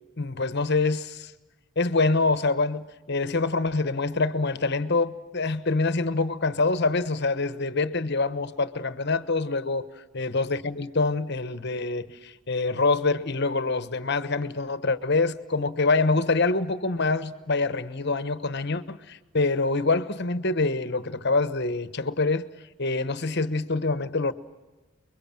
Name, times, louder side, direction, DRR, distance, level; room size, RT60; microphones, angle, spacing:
voice 1, 0.2-1.3 1.8-9.9 10.1-22.5 22.8-24.3, left 3 dB, 55° left, 1.2 m, -25 dB
30.0 x 22.5 x 7.6 m
head